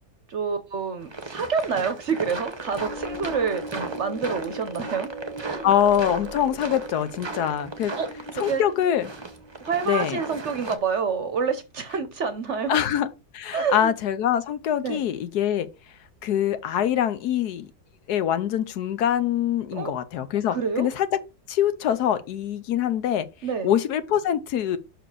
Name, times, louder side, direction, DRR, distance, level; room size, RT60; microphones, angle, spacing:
voice 1, 0.3-5.1 5.4-5.7 7.9-8.6 9.6-12.8 13.5-13.9 14.8-15.0 19.7-19.9 20.5-20.9 23.4-23.7, right 5 dB, 55° right, 0.9 m, -28 dB
sound 1, 1.0-10.8, right 3 dB, 20° right, 0.7 m, -37 dB
sound 2, 2.5-9.8, right 1 dB, 30° left, 1.1 m, -39 dB
voice 2, 5.6-7.9 8.4-9.1 9.9-10.2 12.7-15.7 16.2-17.7 18.1-21.1 21.5-23.3 23.6-24.8, left 10 dB, 75° left, 1.3 m, -24 dB
6.1 x 4.8 x 4.8 m
omnidirectional pair, 1.7 m